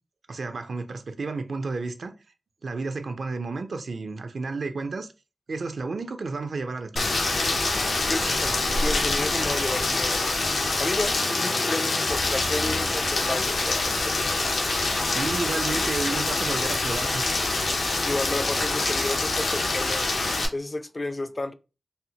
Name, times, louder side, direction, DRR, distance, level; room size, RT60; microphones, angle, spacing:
voice 1, 0.3-2.1 2.6-5.1 5.5-7.2 15.1-17.2, right 3 dB, 70° right, 0.4 m, -32 dB
Rain, 7.0-20.5, left 2 dB, 85° left, 0.6 m, -25 dB
voice 2, 8.1-10.3 10.8-14.6 18.1-20.1 20.5-21.5, left 2 dB, 35° left, 0.3 m, -32 dB
4.2 x 2.0 x 2.8 m
wide cardioid pair, 75°, 0 cm